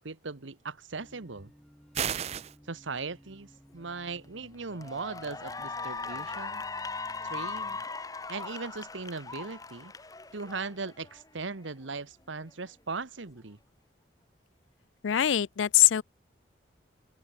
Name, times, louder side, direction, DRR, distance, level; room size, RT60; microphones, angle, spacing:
voice 1, 0.0-1.5 2.6-6.6 7.2-7.8 8.3-9.9 10.3-13.6, right 4 dB, 90° right, 1.3 m, -39 dB
sound 1, 1.0-7.8, equal, 5° left, 5.4 m, -57 dB
sound 2, 1.9-2.5, right 8 dB, 35° right, 0.4 m, -31 dB
Cheering / Applause, 4.0-4.2 4.7-11.2, left 4 dB, 20° left, 1.0 m, -39 dB
voice 2, 15.0-16.0, left 12 dB, 85° left, 0.4 m, -22 dB
open air
head